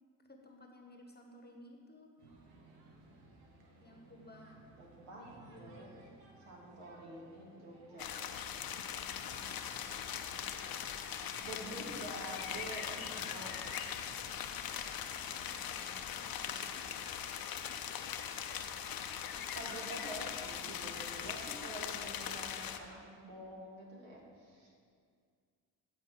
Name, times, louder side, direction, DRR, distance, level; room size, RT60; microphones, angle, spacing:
voice 1, 0.3-2.1 3.8-4.6 5.2-6.1 11.5-12.0, left 1 dB, 20° left, 2 dB, 1.1 m, -58 dB
sound 1, 2.2-16.7, right 2 dB, 85° right, 1.1 m, -60 dB
voice 2, 4.8-5.9 6.5-8.1 11.4-13.6 19.5-24.7, right 1 dB, 70° right, -3 dB, 2.2 m, -47 dB
sound 2, 8.0-22.8, left 8 dB, 50° left, 0.7 m, -41 dB
13.0 x 4.4 x 4.5 m, 2.1 s
hypercardioid pair, 45°, 48 cm